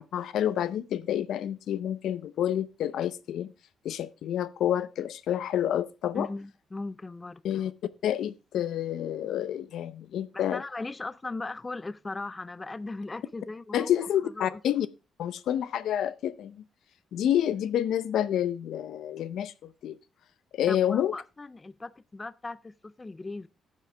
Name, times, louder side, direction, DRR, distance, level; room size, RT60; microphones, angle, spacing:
voice 1, 0.0-3.5 3.8-6.3 7.4-7.7 8.0-10.6 13.7-14.9 15.2-16.6 17.1-20.0 20.5-21.1, left 10 dB, 80° left, 0.7 m, -28 dB
voice 2, 6.1-7.4 10.3-13.9 14.2-14.6 20.7-23.5, left 3 dB, 20° left, 0.4 m, -38 dB
14.0 x 7.6 x 3.3 m
cardioid pair, 105°, 0 cm